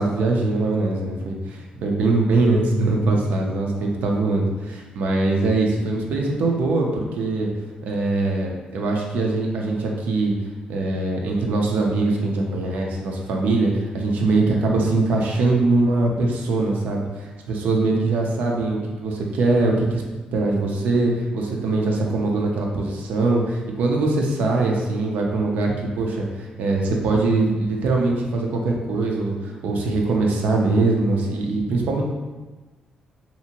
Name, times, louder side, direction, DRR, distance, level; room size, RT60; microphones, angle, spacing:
voice 1, 0.0-7.5 7.8-10.3 10.7-20.0 20.3-32.0, right 2 dB, 80° right, 0 dB, 0.5 m, -22 dB
2.7 x 2.5 x 2.8 m, 1.2 s
cardioid pair, 115°, 3 cm